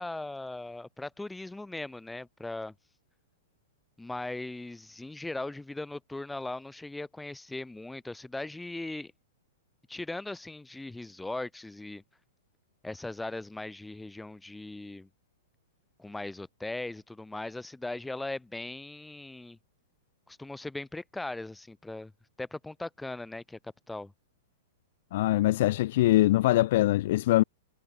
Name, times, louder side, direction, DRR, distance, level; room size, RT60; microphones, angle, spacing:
voice 1, 0.0-2.7 4.0-9.1 9.9-12.0 12.8-15.1 16.0-19.6 20.3-22.1 22.4-23.6 23.9-24.1, left 2 dB, 5° left, 1.9 m, -39 dB
voice 2, 25.1-27.4, left 16 dB, 55° left, 0.9 m, -23 dB
hypercardioid pair, 110°, 0 cm